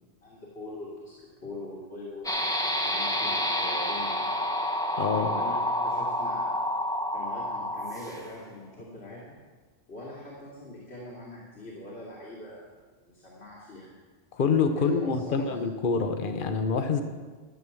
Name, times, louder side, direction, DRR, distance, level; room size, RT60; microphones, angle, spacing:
voice 1, 0.2-2.3 2.8-4.5 5.1-6.6 7.1-9.4 9.9-12.8 13.1-13.9 14.8-15.6, left 1 dB, 75° left, -6 dB, 2.7 m, -42 dB
sound 1, 2.2-8.4, left 1 dB, 5° left, 1.0 m, -29 dB
voice 2, 5.0-5.3 14.3-17.0, left 5 dB, 55° left, 8 dB, 1.1 m, -26 dB
13.0 x 8.0 x 7.0 m, 1.4 s
omnidirectional pair, 1.1 m